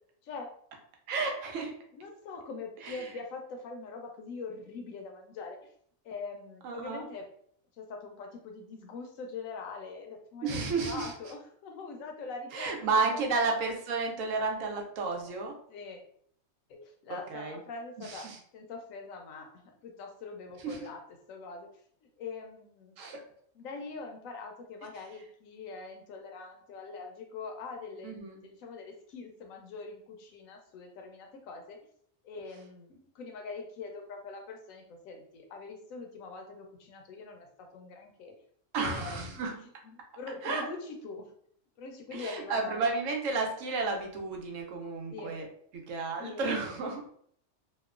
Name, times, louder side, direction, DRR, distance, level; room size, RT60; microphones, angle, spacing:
voice 1, 1.1-1.7 2.8-3.1 6.6-7.0 10.4-11.1 12.5-15.5 17.1-17.6 18.0-18.4 20.6-20.8 23.0-23.2 28.0-28.4 38.7-39.6 40.4-40.7 42.1-45.5 45.7-47.0, right 4 dB, 85° right, 2 dB, 1.0 m, -32 dB
voice 2, 1.9-5.6 6.0-7.3 7.8-12.7 13.1-13.3 15.7-16.0 16.7-18.3 18.5-19.5 19.8-21.0 21.3-21.7 22.2-22.9 23.5-31.8 32.2-38.3 38.8-41.3 41.8-43.1 45.1-45.4 46.2-46.8, left 4 dB, 85° left, 3 dB, 1.0 m, -43 dB
2.9 x 2.1 x 2.3 m, 0.63 s
omnidirectional pair, 1.4 m